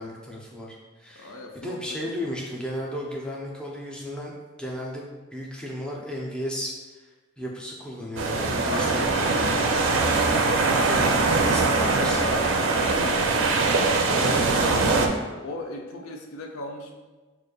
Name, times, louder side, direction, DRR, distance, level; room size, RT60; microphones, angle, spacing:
voice 1, 0.0-7.1 7.4-9.2 10.9-12.2 14.1-14.8, equal, 5° left, -3 dB, 0.4 m, -34 dB
voice 2, 1.2-1.8 2.2-2.3 8.6-14.8 15.4-16.9, left 1 dB, 85° left, 2 dB, 0.5 m, -38 dB
sound 1, 8.2-15.1, right 3 dB, 70° right, 0.4 m, -22 dB
6.2 x 2.5 x 2.3 m, 1.2 s
head